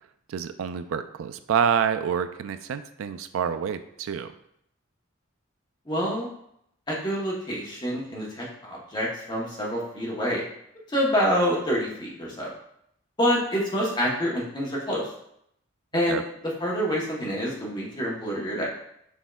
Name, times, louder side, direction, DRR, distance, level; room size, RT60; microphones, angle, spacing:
voice 1, 0.3-4.3 16.1-16.2, right 7 dB, 80° right, 11 dB, 0.3 m, -27 dB
voice 2, 5.9-6.3 6.9-10.4 10.9-12.5 13.2-15.1 15.9-16.2 16.6-18.7, equal, 20° left, -4 dB, 0.9 m, -27 dB
6.1 x 3.6 x 2.3 m, 0.74 s
head